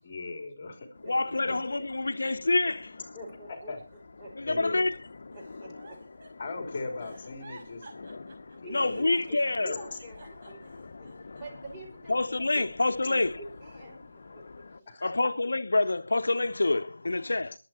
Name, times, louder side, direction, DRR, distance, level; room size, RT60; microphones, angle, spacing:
voice 1, 0.0-0.9 1.4-1.6 3.7-3.8 4.4-4.8 6.4-7.9 8.6-9.1 14.9-15.1, left 3 dB, 30° left, 3.2 m, -38 dB
sound 1, 0.9-14.8, left 3 dB, 50° left, 1.0 m, -47 dB
voice 2, 1.1-2.9 4.4-4.9 8.7-9.7 12.1-13.4 15.0-17.5, left 2 dB, 70° left, 0.7 m, -27 dB
voice 3, 3.1-4.6 5.3-6.0 8.2-8.3 8.6-12.7 13.0-14.0 14.3-14.4 14.8-14.9, right 1 dB, 10° right, 5.8 m, -46 dB
Giggle, 5.3-11.7 12.1-13.0 13.5-14.6 15.1-15.5, right 3 dB, 35° right, 5.7 m, -55 dB
22.0 x 8.7 x 4.3 m
figure-of-eight pair, 170°, 0 cm